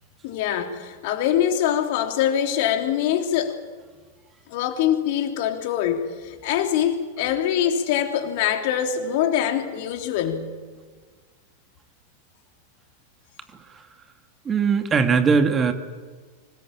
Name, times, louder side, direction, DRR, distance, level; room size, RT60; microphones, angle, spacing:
voice 1, 0.2-3.6 4.5-10.6, left 9 dB, 55° left, 5 dB, 3.4 m, -24 dB
voice 2, 14.4-15.7, right 5 dB, 25° right, 7 dB, 2.5 m, -20 dB
25.5 x 20.0 x 8.9 m, 1.5 s
hypercardioid pair, 95°, 0 cm